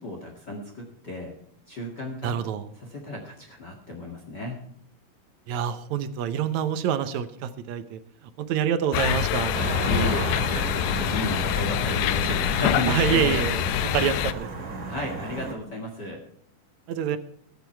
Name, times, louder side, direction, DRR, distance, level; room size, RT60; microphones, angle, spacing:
voice 1, 0.0-1.3 1.7-2.4 2.8-4.6 9.8-13.5 14.8-16.2, left 1 dB, 35° left, 1 dB, 2.2 m, -33 dB
voice 2, 2.2-2.7 5.5-8.0 8.4-9.6 12.9-13.6 13.8-14.7 16.9-17.2, right 9 dB, 70° right, 12 dB, 1.8 m, -26 dB
sound 1, 8.9-14.3, left 11 dB, 75° left, 2.2 m, -25 dB
sound 2, 9.5-15.5, right 3 dB, 35° right, 2.4 m, -33 dB
20.5 x 8.3 x 4.6 m, 0.63 s
omnidirectional pair, 4.0 m